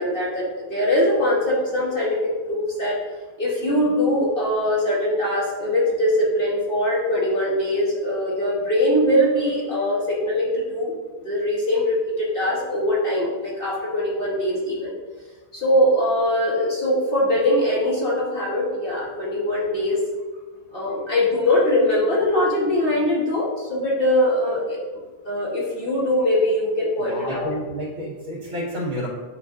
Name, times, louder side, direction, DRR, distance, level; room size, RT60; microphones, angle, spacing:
voice 1, 0.0-3.0 3.4-10.9 11.2-14.9 15.5-20.0 20.7-24.8 25.2-27.5, left 1 dB, 40° left, -5 dB, 1.3 m, -22 dB
voice 2, 27.0-29.1, equal, 60° right, -4 dB, 2.5 m, -30 dB
9.9 x 4.5 x 2.5 m, 1.3 s
omnidirectional pair, 1.5 m